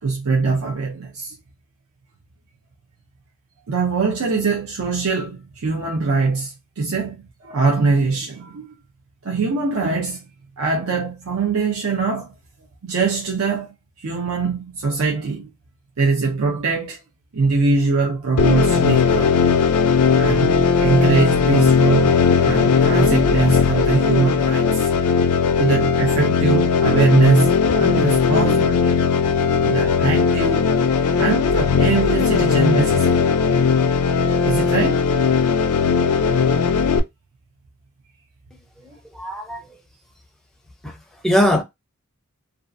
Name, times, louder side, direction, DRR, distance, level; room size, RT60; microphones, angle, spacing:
voice 1, 0.0-1.3 3.7-8.7 9.2-10.3 10.6-12.3 12.8-15.5 16.0-17.0 17.3-19.6 20.2-24.9 25.6-29.0 29.6-30.7 31.2-33.3 34.4-35.1, right 4 dB, 65° right, 0.6 m, -22 dB
sound 1, 18.4-37.0, left 5 dB, 85° left, 0.4 m, -18 dB
voice 2, 38.8-39.8 40.8-41.0 41.2-41.6, equal, ahead, 0.5 m, -21 dB
2.6 x 2.3 x 2.4 m
head